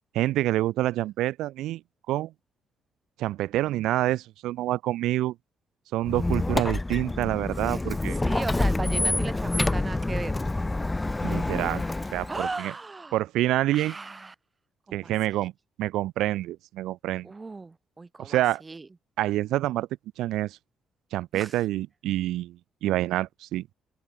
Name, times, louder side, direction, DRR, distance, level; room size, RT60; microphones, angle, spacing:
voice 1, 0.1-1.8 2.1-2.3 3.2-5.3 5.9-8.2 11.2-11.8 12.1-12.7 13.1-13.9 14.9-15.5 15.8-17.3 18.2-18.6 19.2-19.9 20.2-20.6 21.1-23.7, right 15 dB, 90° right, 1.1 m, -27 dB
Squeak, 6.0-12.5, left 2 dB, 15° left, 1.2 m, -27 dB
voice 2, 8.1-10.4 12.3-13.2 13.7-14.3 14.9-15.4 17.2-18.9 21.3-21.6, right 3 dB, 25° right, 3.5 m, -37 dB
open air
cardioid pair, 90°, 0 cm